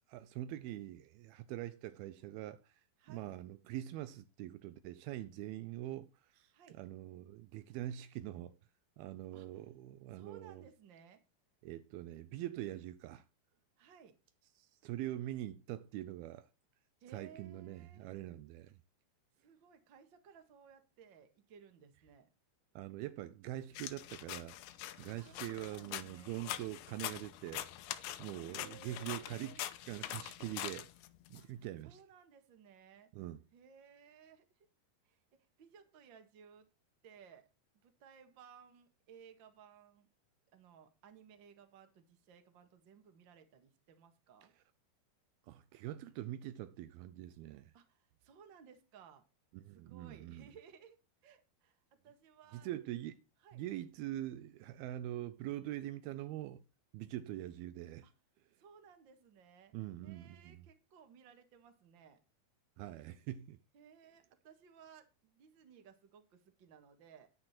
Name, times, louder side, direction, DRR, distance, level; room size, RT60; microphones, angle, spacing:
voice 1, 0.1-2.8 3.1-6.5 6.8-8.6 9.0-10.6 11.6-13.2 14.6-16.5 17.1-18.8 22.8-24.6 25.0-27.7 28.2-29.5 29.9-30.9 31.3-32.0 33.1-33.4 45.5-47.7 49.5-50.5 52.5-53.2 53.5-56.6 56.9-58.1 59.7-60.7 62.8-63.6, right 14 dB, 80° right, 2.4 m, -44 dB
voice 2, 3.0-3.3 6.5-6.8 9.3-9.6 10.1-11.2 13.8-14.2 17.0-18.1 19.4-22.3 25.2-26.4 28.4-29.6 31.3-33.1 33.5-34.7 35.0-36.7 37.0-37.5 37.7-40.1 40.5-44.5 47.7-49.2 49.7-51.0 51.2-52.7 53.4-53.6 58.0-58.1 58.6-59.7 60.0-62.2 63.7-67.3, right 7 dB, 45° right, 1.6 m, -60 dB
sound 1, 23.8-31.4, left 13 dB, 85° left, 3.0 m, -44 dB
10.0 x 9.5 x 4.3 m
omnidirectional pair, 4.6 m